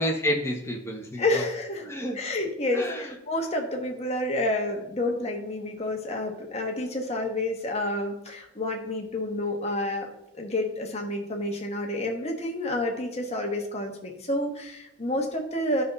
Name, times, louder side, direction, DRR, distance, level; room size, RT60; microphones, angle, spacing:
voice 1, 0.0-1.4 1.8-2.2 2.7-3.1, equal, 15° left, 0 dB, 1.2 m, -29 dB
voice 2, 1.2-1.8 2.1-10.1 10.3-15.8, left 1 dB, 30° left, 2 dB, 1.3 m, -29 dB
11.5 x 5.5 x 4.0 m, 0.82 s
head